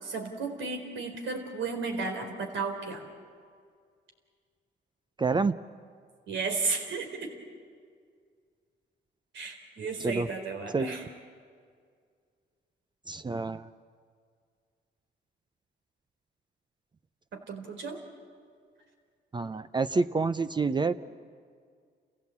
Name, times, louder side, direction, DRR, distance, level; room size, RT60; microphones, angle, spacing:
voice 1, 0.0-3.1 6.3-7.3 9.3-11.0 17.3-18.0, right 4 dB, 70° right, 4 dB, 4.1 m, -34 dB
voice 2, 5.2-5.5 10.0-10.3 10.7-11.0 13.1-13.7 19.3-21.0, right 4 dB, 25° right, 12 dB, 0.5 m, -28 dB
28.0 x 16.0 x 8.5 m, 2.1 s
cardioid pair, 90°, 20 cm